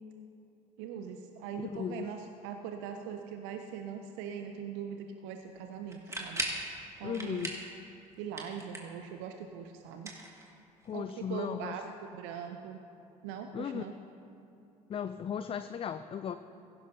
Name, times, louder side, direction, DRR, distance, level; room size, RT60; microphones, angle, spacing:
voice 1, 0.8-6.6 7.0-7.5 8.2-10.2 10.9-12.8 13.2-14.0, right 7 dB, 65° right, 6 dB, 0.6 m, -41 dB
voice 2, 1.7-2.1 7.0-7.6 10.9-11.8 13.5-13.9 14.9-16.4, left 8 dB, 30° left, 11 dB, 0.4 m, -36 dB
sound 1, 5.9-6.7 7.1-7.7 8.0-9.0 9.9-10.9, right 2 dB, 15° right, 1.9 m, -38 dB
16.0 x 11.0 x 2.7 m, 2.8 s
figure-of-eight pair, 55°, 20 cm